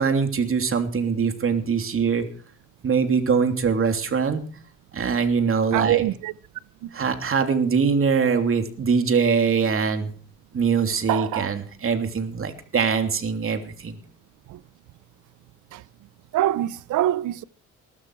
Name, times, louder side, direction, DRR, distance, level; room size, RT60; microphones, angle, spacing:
voice 1, 0.0-2.3 2.8-4.4 4.9-6.0 6.9-10.1 10.5-14.0, right 5 dB, 45° right, 3.0 m, -23 dB
voice 2, 5.7-6.3 6.8-6.9 11.1-11.5 14.5-14.6 15.7-15.8 16.3-17.4, right 14 dB, 80° right, 0.8 m, -24 dB
19.5 x 12.5 x 4.8 m
cardioid pair, 90°, 30 cm